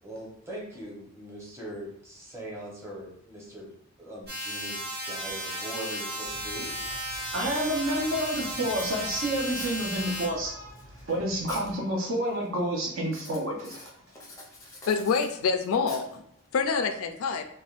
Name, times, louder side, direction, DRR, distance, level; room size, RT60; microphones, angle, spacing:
voice 1, 0.0-3.7 4.0-4.8 5.0-6.7, right 1 dB, 10° right, -5 dB, 0.8 m, -41 dB
Writing, 4.2-4.3 4.8-5.0 5.4-9.9 10.5-11.7 12.0-12.5 13.0-16.5, left 2 dB, 15° left, 0.5 m, -47 dB
sound 1, 4.3-10.3, right 1 dB, 45° right, 1.0 m, -35 dB
sound 2, 6.2-11.8, equal, 90° right, 1.3 m, -49 dB
voice 2, 7.2-10.5 11.1-13.9, right 1 dB, 65° right, -1 dB, 0.7 m, -29 dB
voice 3, 14.9-16.2 16.5-17.5, left 5 dB, 85° left, 7 dB, 0.3 m, -26 dB
3.3 x 2.2 x 2.4 m, 0.69 s
head